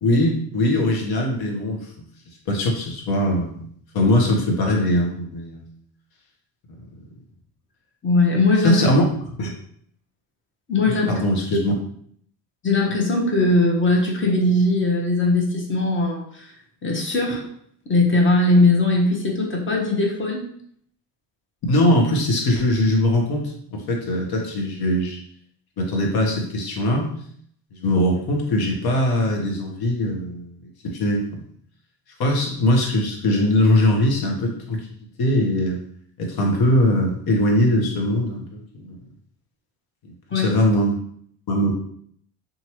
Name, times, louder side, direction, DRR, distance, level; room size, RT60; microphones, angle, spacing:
voice 1, 0.0-2.1 2.5-3.7 3.9-5.7 8.6-9.0 9.4-9.5 10.9-11.7 21.7-25.2 25.8-27.1 27.7-30.6 30.8-31.4 32.2-34.9 35.2-35.8 36.2-39.0 40.0-40.9 41.5-41.7, left 1 dB, 50° left, 1 dB, 1.0 m, -21 dB
voice 2, 8.0-8.8 10.7-11.1 11.5-11.6 12.6-16.5 16.8-17.5 17.9-20.4 40.3-40.5, left 2 dB, 25° left, -1 dB, 0.9 m, -19 dB
2.8 x 2.4 x 2.9 m, 0.63 s
hypercardioid pair, 60°, 48 cm